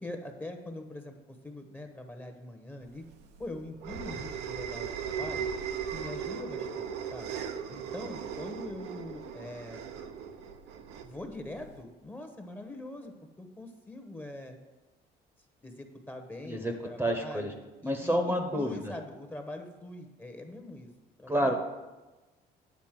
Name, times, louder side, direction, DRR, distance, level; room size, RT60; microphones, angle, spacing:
voice 1, 0.0-3.0 3.4-5.5 5.9-7.3 7.7-9.8 11.0-14.6 15.6-17.5 17.8-20.9 21.2-21.6, left 1 dB, 10° left, 5 dB, 1.0 m, -43 dB
sound 1, 3.0-11.8, right 7 dB, 85° right, 0.8 m, -38 dB
voice 2, 17.0-17.5 17.8-18.9 21.3-21.6, equal, 15° right, 4 dB, 0.9 m, -28 dB
9.6 x 4.1 x 7.5 m, 1.1 s
cardioid pair, 110°, 17 cm